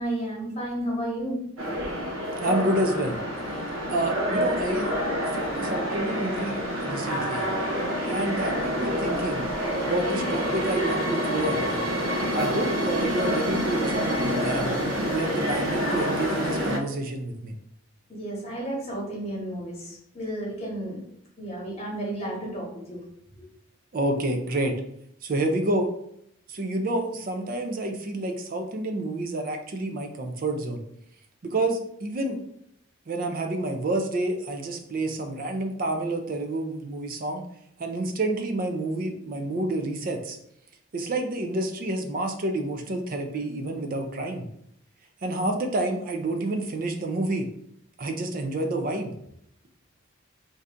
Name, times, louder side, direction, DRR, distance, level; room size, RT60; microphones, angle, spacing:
voice 1, 0.0-1.4 18.1-21.0 21.4-23.0, right 1 dB, 30° left, -3 dB, 1.0 m, -32 dB
sound 1, 1.6-16.8, equal, 75° right, 0.7 m, -27 dB
voice 2, 2.4-3.2 3.9-4.9 5.3-7.5 8.1-9.5 9.8-11.8 12.3-14.7 15.1-17.5 23.9-24.8 25.2-25.9 26.5-30.8 31.4-32.4 33.1-37.4 37.8-40.4 40.9-44.5 45.2-47.5 48.0-49.1, right 2 dB, 45° right, 5 dB, 0.4 m, -29 dB
2.6 x 2.3 x 3.6 m, 0.73 s
head